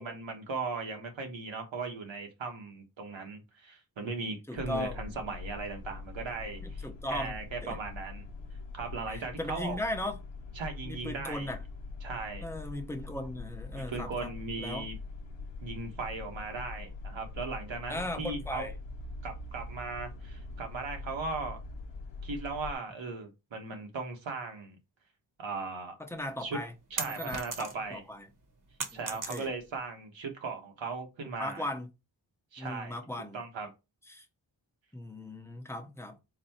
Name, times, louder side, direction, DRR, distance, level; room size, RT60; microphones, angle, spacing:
voice 1, 0.0-8.3 8.7-9.8 10.5-11.5 12.0-12.4 13.7-15.0 15.6-18.6 19.2-21.6 22.2-24.8 25.4-26.0 26.4-26.6 26.9-28.0 28.9-31.6 32.5-33.7, right 3 dB, 85° right, 1.2 m, -38 dB
voice 2, 4.5-5.0 6.6-7.4 7.6-7.8 9.1-10.2 10.8-11.6 12.4-14.3 14.6-14.9 17.9-18.7 26.0-26.7 27.1-28.3 29.3-29.5 31.4-31.9 32.6-33.4 34.1-34.3 34.9-36.2, left 1 dB, 5° left, 0.8 m, -37 dB
sound 1, 4.6-22.7, left 3 dB, 80° left, 0.7 m, -43 dB
sound 2, 26.2-28.0 28.3-29.8, right 4 dB, 45° right, 1.0 m, -38 dB
4.1 x 2.2 x 4.2 m
wide cardioid pair, 75°, 45 cm